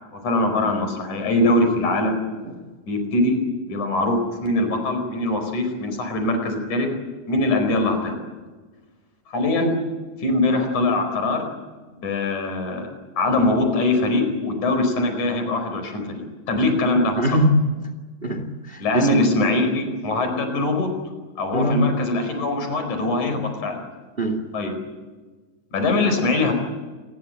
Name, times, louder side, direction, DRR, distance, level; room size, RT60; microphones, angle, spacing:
voice 1, 0.1-2.2 2.9-3.4 3.7-6.9 7.3-8.2 9.3-9.7 10.2-11.4 11.9-12.9 13.2-17.2 18.8-20.9 21.4-23.8 24.5-24.7 25.7-26.5, left 2 dB, 70° left, 6 dB, 6.2 m, -22 dB
voice 2, 17.2-17.6 18.2-19.3 21.5-21.8 24.2-24.5, equal, 20° right, 8 dB, 2.0 m, -22 dB
28.5 x 21.0 x 7.9 m, 1.3 s
omnidirectional pair, 3.6 m